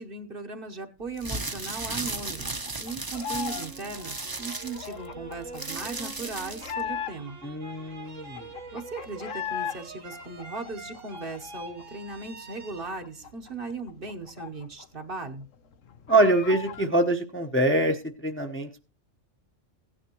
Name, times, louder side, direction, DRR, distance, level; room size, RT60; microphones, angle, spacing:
voice 1, 0.0-7.4 8.7-15.5, right 3 dB, 50° right, 5 dB, 1.2 m, -38 dB
sound 1, 1.1-6.8, right 3 dB, 20° right, 0.7 m, -35 dB
sound 2, 2.1-3.7 3.9-7.5 7.9-8.0 8.2-9.8 10.1-11.8 12.2-12.3 12.6-15.0 15.3-15.4 15.7-16.9, left 8 dB, 90° left, 1.2 m, -38 dB
sound 3, 3.1-14.1, right 3 dB, 85° right, 2.0 m, -45 dB
voice 2, 7.4-8.5 16.1-18.8, right 2 dB, 10° left, 3 dB, 0.8 m, -24 dB
16.0 x 10.0 x 3.0 m, 0.32 s
omnidirectional pair, 1.3 m